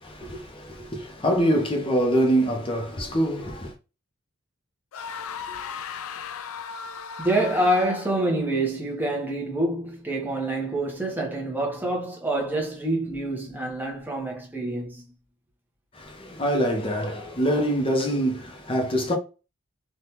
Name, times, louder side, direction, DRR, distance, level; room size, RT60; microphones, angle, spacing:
voice 1, 0.0-3.7 15.9-19.1, equal, 25° left, 0.7 m, -25 dB
Very distorted male scream, 4.9-8.3, left 7 dB, 75° left, 0.3 m, -36 dB
voice 2, 7.2-15.1, right 1 dB, 10° right, 0.8 m, -27 dB
3.4 x 2.4 x 2.8 m
head